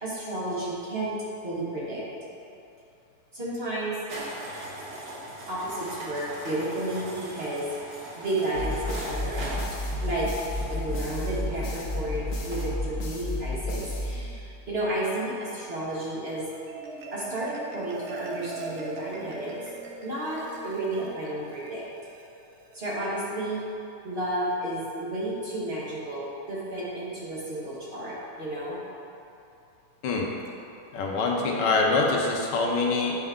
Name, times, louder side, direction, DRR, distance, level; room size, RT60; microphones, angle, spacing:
voice 1, 0.0-1.2 1.4-2.0 3.3-4.0 5.5-7.7 8.2-9.6 10.0-10.3 10.7-16.5 17.1-19.5 20.0-21.8 22.7-23.6 24.0-28.8, right 1 dB, 40° right, -8 dB, 1.5 m, -32 dB
sound 1, 4.1-12.7, right 1 dB, 90° right, 1.7 m, -40 dB
sound 2, 8.5-14.7, left 1 dB, 55° left, 1.2 m, -32 dB
Marimba xylophone, 16.4-23.0, right 3 dB, 60° right, 0.8 m, -40 dB
voice 2, 30.9-33.2, left 3 dB, 80° left, -1 dB, 1.5 m, -24 dB
9.0 x 4.3 x 3.7 m, 2.7 s
omnidirectional pair, 1.8 m